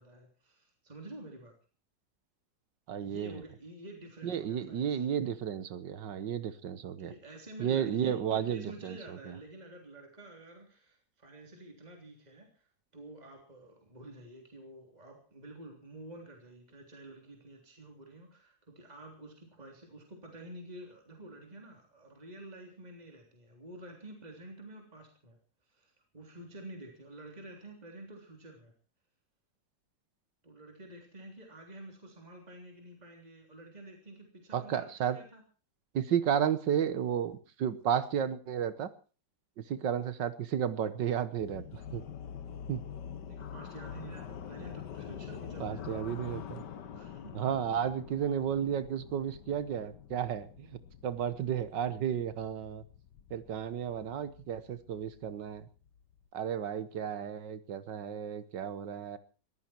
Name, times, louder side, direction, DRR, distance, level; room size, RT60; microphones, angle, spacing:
voice 1, 0.0-1.5 3.0-5.1 7.0-25.4 25.7-28.7 30.4-35.4 42.4-42.6 43.3-46.5 46.9-47.3, right 1 dB, 20° right, 2 dB, 3.5 m, -49 dB
voice 2, 2.9-3.4 4.2-7.1 7.6-9.3 34.5-35.2 35.9-38.9 39.7-42.0 42.7-42.8 45.6-46.6 47.3-50.7 51.0-52.8 53.3-55.6 56.3-59.2, right 8 dB, 80° right, 14 dB, 1.8 m, -33 dB
sound 1, 41.4-56.3, left 8 dB, 70° left, 1.7 m, -46 dB
21.0 x 14.5 x 4.5 m, 0.37 s
omnidirectional pair, 1.9 m